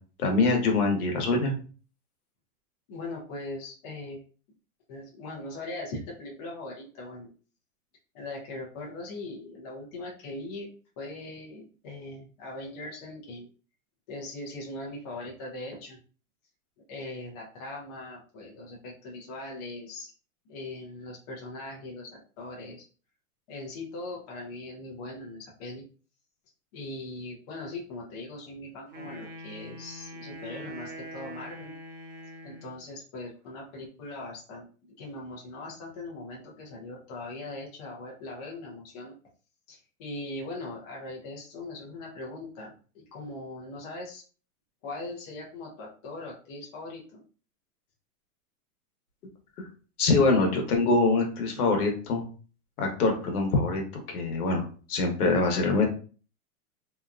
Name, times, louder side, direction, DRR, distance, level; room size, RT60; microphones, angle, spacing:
voice 1, 0.2-1.6 49.6-49.7 50.0-52.2 52.8-53.8 54.1-55.9, left 3 dB, 75° left, 3 dB, 1.1 m, -24 dB
voice 2, 2.9-4.2 4.9-7.3 8.1-10.7 11.0-13.5 14.1-16.0 16.9-20.1 20.5-22.8 23.5-25.8 26.7-31.7 32.4-39.1 39.7-44.2 44.8-47.2, left 2 dB, 25° left, -3 dB, 0.6 m, -40 dB
Wind instrument woodwind instrument, 28.9-32.9, right 1 dB, 35° right, 0.4 m, -43 dB
2.7 x 2.3 x 2.4 m, 0.38 s
supercardioid pair, 160°, 45 cm